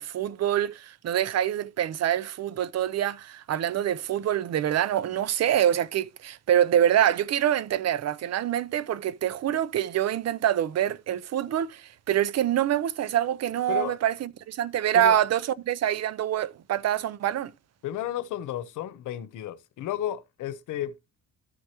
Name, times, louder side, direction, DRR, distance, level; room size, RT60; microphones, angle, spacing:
voice 1, 0.0-17.5, right 11 dB, 60° right, 0.6 m, -25 dB
voice 2, 17.8-20.9, left 12 dB, 85° left, 0.9 m, -32 dB
14.0 x 4.7 x 2.9 m
cardioid pair, 90°, 30 cm